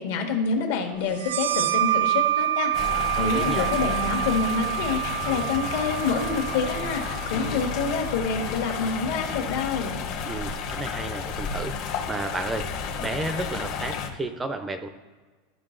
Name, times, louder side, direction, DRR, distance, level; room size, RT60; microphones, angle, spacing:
voice 1, 0.0-2.7 3.2-10.0, left 4 dB, 70° left, 3 dB, 1.4 m, -27 dB
sound 1, 1.2-8.5, right 14 dB, 85° right, 0.3 m, -28 dB
sound 2, 2.7-14.1, left 6 dB, 45° left, 0.8 m, -32 dB
voice 2, 3.2-3.8 10.2-12.7 13.0-14.9, right 2 dB, 10° right, 8 dB, 0.4 m, -32 dB
12.5 x 5.1 x 2.5 m, 1.4 s
supercardioid pair, 165°, 0 cm